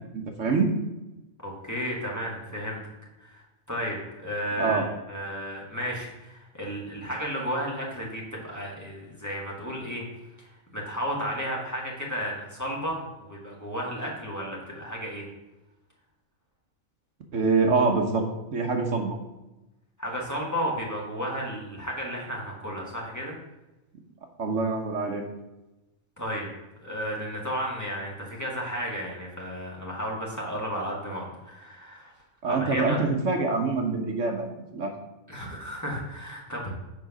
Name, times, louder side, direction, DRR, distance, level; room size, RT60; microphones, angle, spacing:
voice 1, 0.1-0.7 4.6-4.8 17.3-18.2 18.5-19.2 24.4-25.2 32.4-34.9, right 4 dB, 65° right, 4 dB, 1.3 m, -25 dB
voice 2, 1.4-2.8 3.2-10.0 10.4-15.3 20.0-23.4 26.2-26.5 26.8-32.1 32.5-33.0 35.3-36.7, equal, 15° left, -4 dB, 1.9 m, -33 dB
7.6 x 4.8 x 6.0 m, 1.0 s
omnidirectional pair, 1.4 m